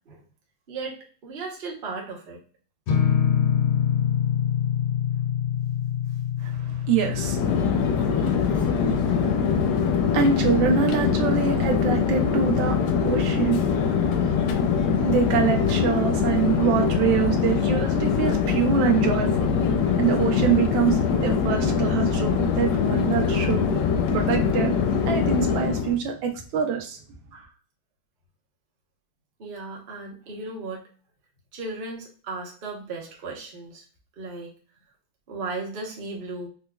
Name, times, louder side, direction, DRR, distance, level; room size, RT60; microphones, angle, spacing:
voice 1, 0.7-2.4 8.4-8.7 27.3-27.5 29.4-30.8 31.5-33.8 34.2-34.5 35.3-36.5, right 3 dB, 40° right, -2 dB, 0.7 m, -36 dB
sound 1, 2.9-10.4, left 9 dB, 90° left, 1.6 m, -26 dB
voice 2, 6.4-7.4 8.2-8.4 9.1-9.2 10.1-12.8 13.0-13.6 15.1-19.5 20.0-24.7 25.1-27.0, right 7 dB, 75° right, 2 dB, 1.4 m, -25 dB
Chatter / Fixed-wing aircraft airplane, 7.1-26.0, left 6 dB, 70° left, 1.0 m, -23 dB
5.0 x 2.1 x 2.2 m, 0.41 s
omnidirectional pair, 2.2 m